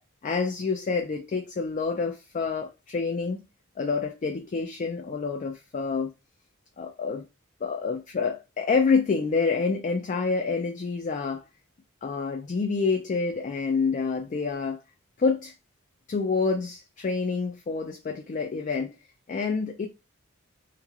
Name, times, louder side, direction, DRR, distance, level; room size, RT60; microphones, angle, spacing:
voice 1, 0.2-3.4 3.8-6.1 6.8-7.3 7.6-11.4 12.0-14.8 15.2-15.5 16.1-18.9 19.3-19.9, left 4 dB, 35° left, 0.3 m, -27 dB
3.0 x 2.8 x 2.4 m
head